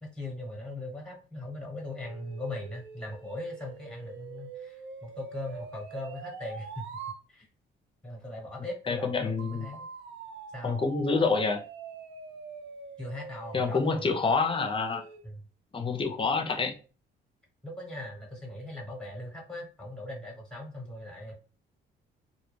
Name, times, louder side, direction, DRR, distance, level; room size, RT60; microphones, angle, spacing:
voice 1, 0.0-7.5 8.0-9.8 10.5-10.8 13.0-14.2 15.2-15.4 17.6-21.3, left 1 dB, 5° left, 0 dB, 0.9 m, -40 dB
sound 1, 2.0-7.2 9.4-15.2, right 5 dB, 70° right, 0.5 m, -44 dB
voice 2, 8.9-9.7 10.6-11.6 13.5-15.0 15.7-16.7, left 4 dB, 25° left, 5 dB, 0.5 m, -27 dB
2.2 x 2.1 x 3.1 m, 0.37 s
cardioid pair, 90°, 20 cm